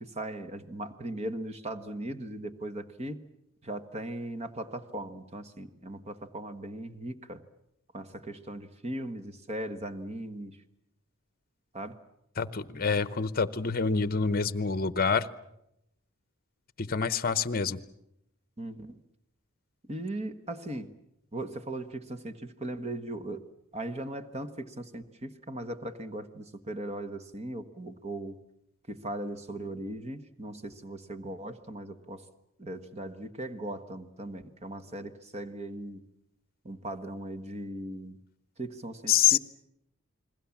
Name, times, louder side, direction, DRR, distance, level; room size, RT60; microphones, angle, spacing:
voice 1, 0.0-3.3 3.6-7.4 7.9-10.6 11.7-12.0 18.6-19.0 19.9-21.0 21.3-23.5 23.7-28.4 28.9-32.3 32.6-36.0 36.6-38.2 38.6-39.4, right 1 dB, 30° right, 10 dB, 1.3 m, -38 dB
voice 2, 12.4-15.3 16.8-17.8 39.1-39.4, left 6 dB, 40° left, 16 dB, 0.9 m, -26 dB
29.5 x 21.0 x 7.2 m, 0.81 s
head